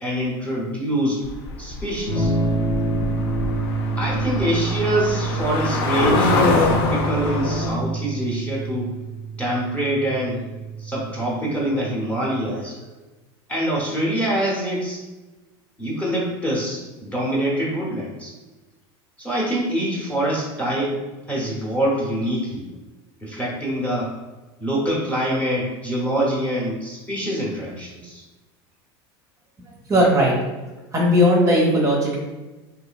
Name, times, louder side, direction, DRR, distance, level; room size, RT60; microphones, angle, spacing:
voice 1, 0.0-1.2 1.6-2.3 4.0-8.9 9.4-10.4 10.8-12.9 13.5-15.0 15.8-18.3 19.2-20.9 21.3-22.6 23.2-24.1 24.6-28.2, right 1 dB, 10° left, -5 dB, 0.8 m, -25 dB
sound 1, 1.2-7.8, left 3 dB, 75° left, 0.5 m, -24 dB
Electric guitar / Strum, 2.1-11.8, right 3 dB, 45° left, 0.8 m, -27 dB
voice 2, 29.9-30.3 30.9-32.2, equal, 25° right, -3 dB, 0.6 m, -17 dB
3.0 x 2.5 x 2.2 m, 1.2 s
supercardioid pair, 115°, 13 cm